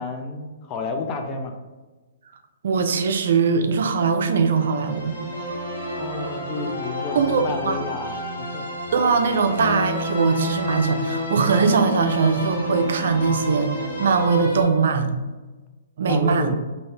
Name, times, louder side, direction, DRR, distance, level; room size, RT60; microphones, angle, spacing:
voice 1, 0.0-1.5 5.9-8.7 16.0-16.6, left 3 dB, 30° left, 4 dB, 0.4 m, -30 dB
voice 2, 2.6-5.2 7.2-7.8 8.9-13.7 14.0-15.1 16.0-16.5, right 5 dB, 70° right, 6 dB, 0.4 m, -21 dB
sound 1, 4.2-14.6, left 1 dB, 85° left, 1.4 m, -30 dB
2.8 x 2.7 x 3.2 m, 1.2 s
hypercardioid pair, 135°, 0 cm